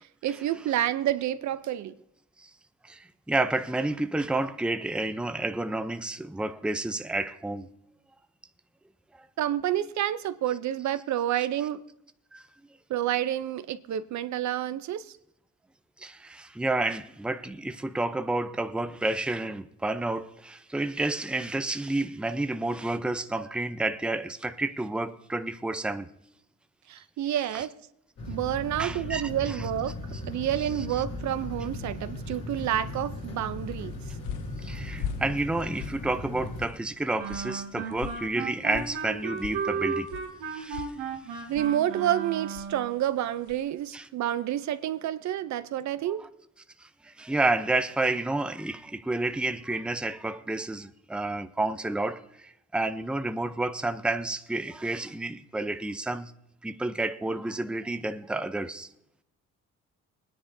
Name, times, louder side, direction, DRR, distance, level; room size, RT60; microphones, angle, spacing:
voice 1, 0.2-1.9 9.4-11.8 12.9-15.1 26.9-27.7 28.3-29.9 30.3-34.0 41.5-46.2, right 12 dB, 70° right, 0.6 m, -29 dB
voice 2, 2.8-7.7 9.1-9.3 11.4-11.5 12.3-12.5 16.0-26.1 27.5-27.6 28.8-29.6 34.6-40.1 40.5-40.9 41.3-41.4 43.9-44.1 46.8-56.3 56.6-58.9, right 2 dB, 5° right, 0.6 m, -30 dB
sound 1, 28.2-36.7, left 2 dB, 55° left, 2.9 m, -37 dB
sound 2, 33.7-43.8, left 9 dB, 75° left, 0.7 m, -44 dB
Wind instrument woodwind instrument, 37.2-42.9, right 5 dB, 90° right, 2.0 m, -34 dB
21.5 x 10.0 x 2.7 m
cardioid pair, 90°, 30 cm